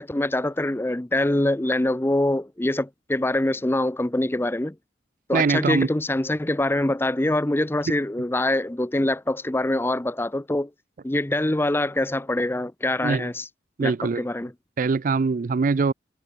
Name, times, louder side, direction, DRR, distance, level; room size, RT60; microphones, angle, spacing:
voice 1, 0.0-4.8 5.3-10.7 11.0-13.5 13.8-14.5, left 1 dB, 15° left, 0.6 m, -24 dB
voice 2, 5.3-5.9 13.0-13.3 13.8-14.3 14.8-15.9, right 4 dB, 45° right, 0.4 m, -22 dB
head